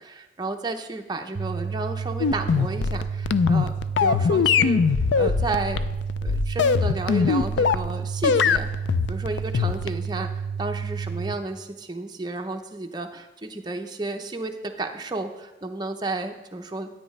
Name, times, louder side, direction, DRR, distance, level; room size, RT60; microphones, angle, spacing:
voice 1, 0.0-5.8 6.2-8.7 9.1-16.9, right 2 dB, 25° right, 4 dB, 0.7 m, -32 dB
sound 1, 1.3-11.3, right 6 dB, 70° right, 0.6 m, -31 dB
sound 2, 2.2-7.9 8.2-10.1, left 6 dB, 75° left, 0.3 m, -21 dB
13.5 x 8.8 x 3.2 m, 1.0 s
head